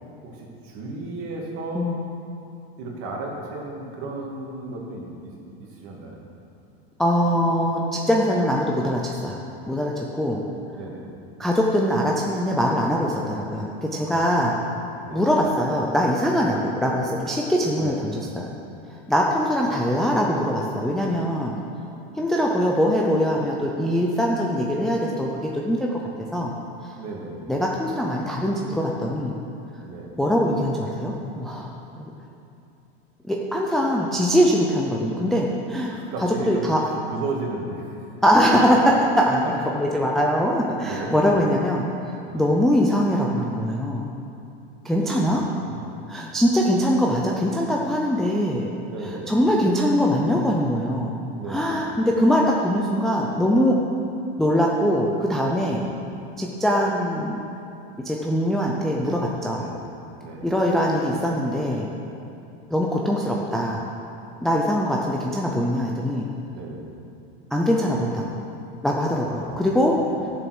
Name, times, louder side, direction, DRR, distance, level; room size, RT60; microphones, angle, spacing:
voice 1, 0.3-1.9 2.7-5.3 5.7-6.2 10.7-11.1 14.1-15.4 17.8-18.0 27.0-27.4 29.8-30.1 35.9-37.9 40.7-41.1 42.2-42.5 45.2-46.0 48.9-49.4 51.4-51.9 55.6-55.8 59.5-59.8 60.2-60.5 66.5-66.9 69.2-69.6 70.1-70.2, right 2 dB, 45° right, -2 dB, 2.3 m, -35 dB
voice 2, 7.0-9.4 9.7-10.4 11.4-14.6 15.1-18.5 19.1-21.5 22.2-25.9 26.3-26.5 27.5-29.4 30.2-32.1 33.3-36.8 38.2-38.8 39.2-44.1 44.8-45.4 46.1-48.7 49.3-51.1 51.5-53.8 54.4-55.8 56.4-57.4 58.0-59.6 60.4-61.9 62.7-63.8 64.4-66.3 67.5-68.2 68.8-70.0 70.2-70.3, equal, ahead, -2 dB, 0.4 m, -22 dB
12.5 x 7.1 x 6.1 m, 2.7 s
supercardioid pair, 155°, 32 cm